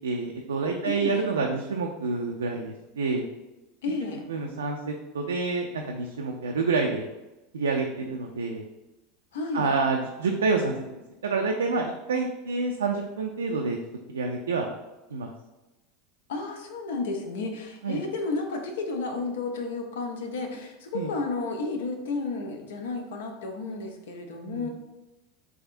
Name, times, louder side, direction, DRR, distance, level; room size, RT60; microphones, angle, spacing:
voice 1, 0.0-3.3 4.3-7.1 7.5-8.6 9.5-13.8 14.1-14.7 15.1-15.3 17.8-18.0 20.9-21.1 24.5-24.7, right 4 dB, 80° right, 2 dB, 0.3 m, -28 dB
voice 2, 0.8-1.2 3.8-4.2 9.3-9.7 16.3-24.7, left 3 dB, 70° left, 4 dB, 0.6 m, -32 dB
3.5 x 3.3 x 2.5 m, 1.0 s
hypercardioid pair, 85°, 0 cm